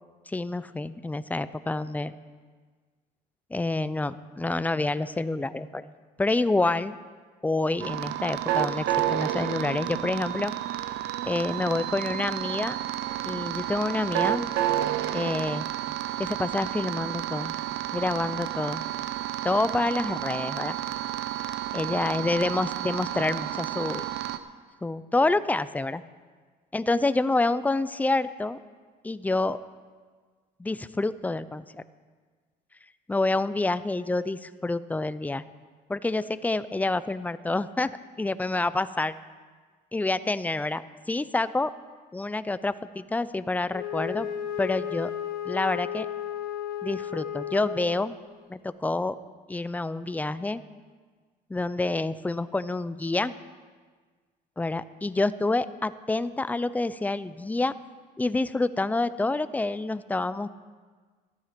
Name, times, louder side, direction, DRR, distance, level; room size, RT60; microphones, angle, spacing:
voice 1, 0.3-2.1 3.5-5.9 6.2-7.0 7.4-10.5 11.2-12.8 13.2-14.5 15.1-15.6 16.2-17.5 17.9-18.8 19.4-20.8 21.7-24.1 24.8-26.0 26.7-28.6 29.0-29.6 30.6-31.7 33.1-35.4 35.9-37.9 38.2-39.1 39.9-40.8 41.1-41.7 42.1-44.3 44.6-45.1 45.4-46.1 46.8-48.2 48.5-49.2 49.5-50.6 51.5-53.3 54.6-57.7 58.2-60.5, left 2 dB, 10° left, 14 dB, 0.5 m, -27 dB
sound 1, 7.8-24.4, right 12 dB, 85° right, 0.7 m, -31 dB
Wind instrument woodwind instrument, 43.7-48.3, left 9 dB, 60° left, 1.2 m, -34 dB
14.0 x 12.0 x 5.2 m, 1.5 s
cardioid pair, 110°, 17 cm